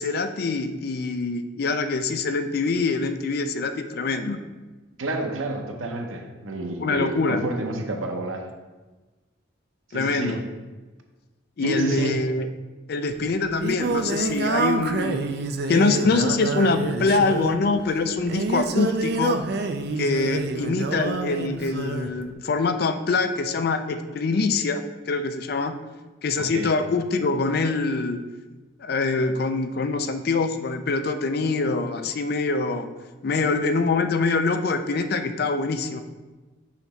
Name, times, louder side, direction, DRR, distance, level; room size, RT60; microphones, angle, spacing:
voice 1, 0.0-4.4 6.8-7.4 9.9-10.4 11.6-12.5 12.9-15.2 15.7-19.4 20.0-25.8 26.2-28.2 28.8-32.9 33.2-36.0, left 3 dB, 50° left, 9 dB, 0.4 m, -24 dB
voice 2, 5.0-8.5 9.9-10.4 11.6-12.2 26.4-26.7, right 2 dB, 90° right, 3 dB, 0.8 m, -29 dB
Singing, 13.1-22.1, right 3 dB, 50° right, 0.4 m, -27 dB
5.7 x 3.0 x 5.5 m, 1.2 s
head